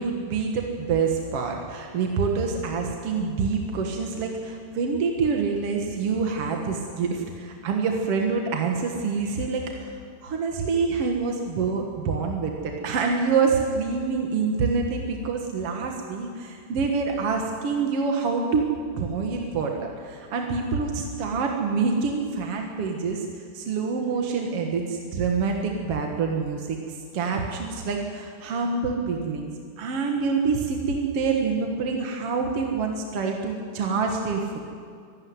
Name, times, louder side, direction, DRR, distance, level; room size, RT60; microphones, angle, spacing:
voice 1, 0.0-9.9 10.2-18.7 19.0-26.8 27.1-29.5 29.8-34.6, right 5 dB, 50° right, 2 dB, 2.0 m, -26 dB
24.0 x 12.5 x 9.6 m, 2.2 s
omnidirectional pair, 4.1 m